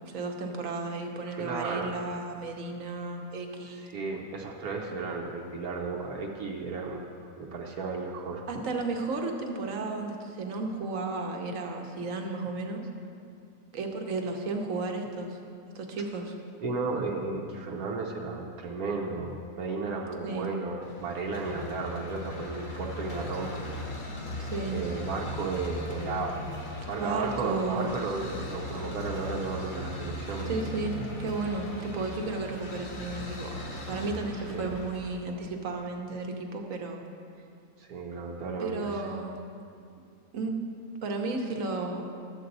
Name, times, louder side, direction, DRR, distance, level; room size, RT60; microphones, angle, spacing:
voice 1, 0.0-3.8 8.5-12.8 13.7-15.4 15.7-16.3 20.2-20.5 24.4-24.8 26.9-27.9 30.5-33.5 33.9-37.0 38.6-39.4 40.3-40.6 41.0-42.1, right 3 dB, 65° right, 3 dB, 1.3 m, -33 dB
voice 2, 1.3-1.9 3.6-8.4 16.6-23.6 24.7-26.5 26.9-30.5 34.5-34.7 37.8-39.2, right 4 dB, 90° right, -2 dB, 1.3 m, -34 dB
sound 1, 20.8-35.2, left 1 dB, 75° left, 1.8 m, -38 dB
12.5 x 7.8 x 4.0 m, 2.5 s
omnidirectional pair, 1.5 m